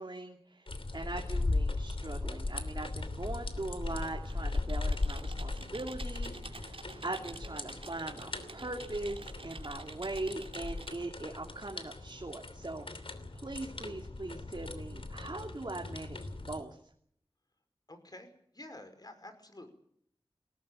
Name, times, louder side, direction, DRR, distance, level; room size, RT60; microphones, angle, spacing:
voice 1, 0.0-16.2 16.5-16.8, right 2 dB, 45° right, 2 dB, 2.8 m, -41 dB
sound 1, 0.7-16.6, left 2 dB, 65° left, 2.9 m, -38 dB
Computer keyboard, 4.2-11.0, right 3 dB, 65° right, 3.1 m, -49 dB
voice 2, 17.9-19.7, left 1 dB, 40° left, 8 dB, 5.3 m, -50 dB
22.0 x 18.0 x 9.0 m, 0.68 s
wide cardioid pair, 45°, 10 cm